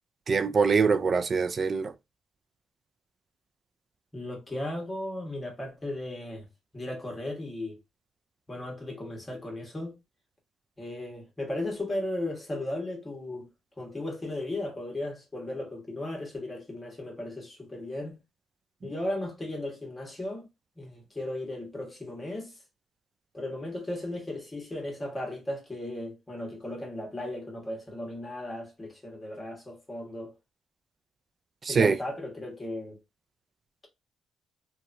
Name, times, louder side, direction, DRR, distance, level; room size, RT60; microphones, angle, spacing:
voice 1, 0.3-1.9 31.6-32.0, right 5 dB, 40° right, 0.3 m, -24 dB
voice 2, 4.1-6.5 6.7-7.8 8.5-10.0 10.8-13.5 13.8-18.2 18.8-20.5 20.8-22.6 23.3-30.3 31.7-33.0, left 1 dB, 20° left, 1.2 m, -36 dB
2.8 x 2.2 x 2.5 m
cardioid pair, 90°, 0 cm